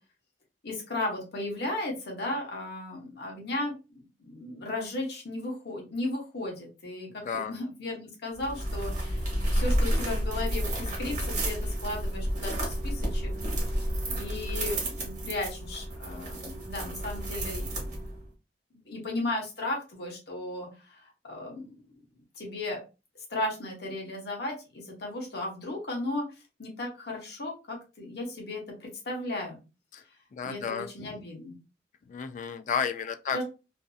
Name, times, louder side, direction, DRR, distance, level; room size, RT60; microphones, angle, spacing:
voice 1, 0.6-3.7 4.2-13.3 14.1-17.9 18.7-21.8 22.3-22.8 23.3-26.3 26.6-29.6 30.4-31.5 33.3-33.4, left 2 dB, 65° left, 0.9 m, -35 dB
voice 2, 7.1-7.6 29.9-30.0 30.3-31.2 32.1-33.4, left 6 dB, 45° left, 0.3 m, -33 dB
sound 1, 8.4-18.3, equal, 45° right, 1.1 m, -31 dB
2.6 x 2.5 x 2.3 m
head